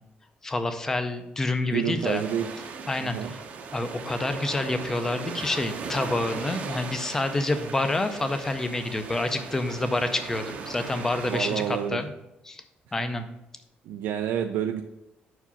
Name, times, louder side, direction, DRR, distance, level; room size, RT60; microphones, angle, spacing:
voice 1, 0.4-2.2 2.9-3.4 3.7-12.1 12.5-12.6 12.9-13.3, left 2 dB, 15° left, 8 dB, 0.5 m, -28 dB
voice 2, 1.7-2.5 3.0-3.3 11.3-12.0 13.8-14.8, right 9 dB, 85° right, 5 dB, 0.4 m, -28 dB
sound 1, 1.9-11.9, right 5 dB, 45° right, 0.7 m, -38 dB
5.6 x 4.8 x 5.6 m, 0.88 s
cardioid pair, 175°, 3 cm